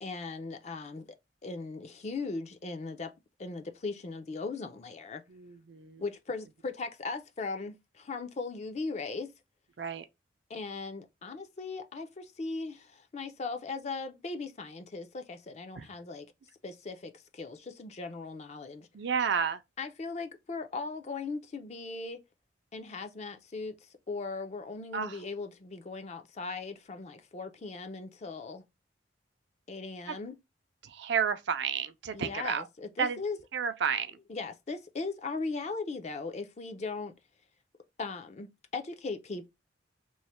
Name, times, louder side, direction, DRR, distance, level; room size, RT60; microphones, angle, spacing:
voice 1, 0.0-1.1 1.4-3.1 3.4-5.2 6.0-9.3 10.5-16.3 16.6-18.9 19.8-22.2 22.7-28.6 29.7-30.3 32.1-33.4 34.3-37.1 38.0-39.5, left 3 dB, 35° left, 0.4 m, -38 dB
voice 2, 5.3-6.0 9.8-10.1 15.7-15.9 18.9-19.6 24.9-25.2 30.1-30.2 30.8-32.7 33.0-33.2 33.5-34.2, right 6 dB, 65° right, 0.4 m, -31 dB
3.1 x 2.1 x 4.1 m
head